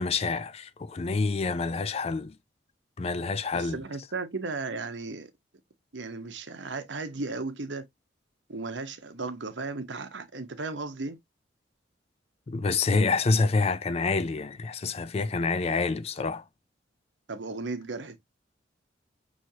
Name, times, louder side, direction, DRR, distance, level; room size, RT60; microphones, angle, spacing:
voice 1, 0.0-2.4 3.0-3.8 12.5-16.4, left 4 dB, 35° left, 0.4 m, -27 dB
voice 2, 3.5-5.3 5.9-7.9 8.5-11.2 17.3-18.2, right 3 dB, 80° right, 0.9 m, -35 dB
6.2 x 3.1 x 2.8 m
head